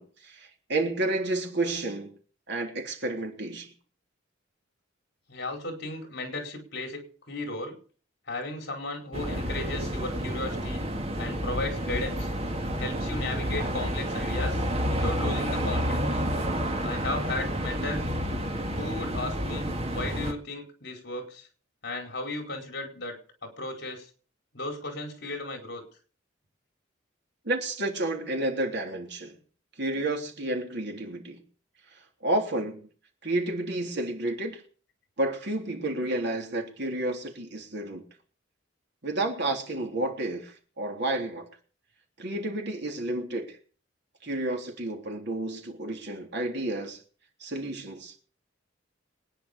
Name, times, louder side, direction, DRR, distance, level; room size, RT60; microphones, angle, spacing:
voice 1, 0.0-2.1 2.5-3.7 27.5-29.3 29.8-31.4 32.2-32.8 33.2-34.6 35.2-38.0 39.0-41.5 42.2-43.6 44.2-47.0 47.4-48.2, right 2 dB, 60° right, 3.5 m, -31 dB
voice 2, 5.3-7.8 8.3-10.8 11.2-12.3 12.8-16.2 16.8-18.0 18.8-21.5 21.8-24.1 24.5-25.8, left 2 dB, 60° left, 4.9 m, -35 dB
sound 1, 9.1-20.3, equal, 35° right, 2.1 m, -30 dB
23.5 x 10.0 x 5.4 m
head